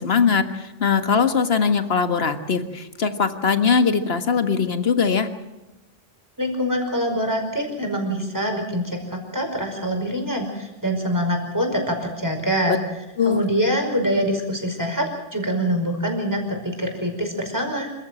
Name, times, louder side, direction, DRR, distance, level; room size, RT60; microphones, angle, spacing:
voice 1, 0.0-5.3 12.7-12.8 13.2-13.4, left 5 dB, 75° left, 9 dB, 1.8 m, -21 dB
voice 2, 6.4-12.8 13.3-17.9, equal, 20° right, 3 dB, 5.2 m, -25 dB
26.5 x 15.0 x 7.7 m, 1.0 s
omnidirectional pair, 1.1 m